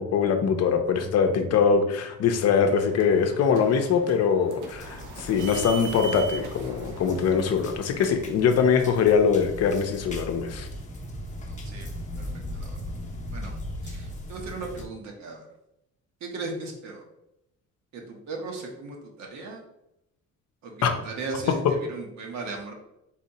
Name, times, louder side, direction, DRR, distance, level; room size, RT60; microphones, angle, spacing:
voice 1, 0.0-10.7 20.8-21.0, left 6 dB, 60° left, 6 dB, 0.6 m, -23 dB
sound 1, 2.3-9.7, right 4 dB, 90° right, 0.8 m, -41 dB
sound 2, 4.7-14.8, left 1 dB, 25° left, 0.8 m, -39 dB
voice 2, 11.5-11.9 12.2-12.8 13.3-13.6 13.8-15.5 16.2-17.0 17.9-19.6 20.6-22.7, right 3 dB, 65° right, 1 dB, 1.1 m, -37 dB
4.2 x 2.8 x 4.1 m, 0.83 s
cardioid pair, 135°, 30 cm